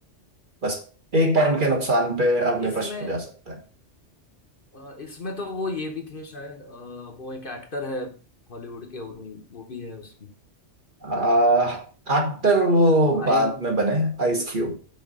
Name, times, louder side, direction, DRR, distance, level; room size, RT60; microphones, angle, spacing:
voice 1, 1.1-3.5 11.0-14.8, right 1 dB, 45° right, 1.5 m, -21 dB
voice 2, 2.6-3.2 4.7-8.2 8.5-10.3 13.1-13.6, left 2 dB, 50° left, 1.2 m, -35 dB
6.0 x 4.0 x 5.3 m
omnidirectional pair, 1.2 m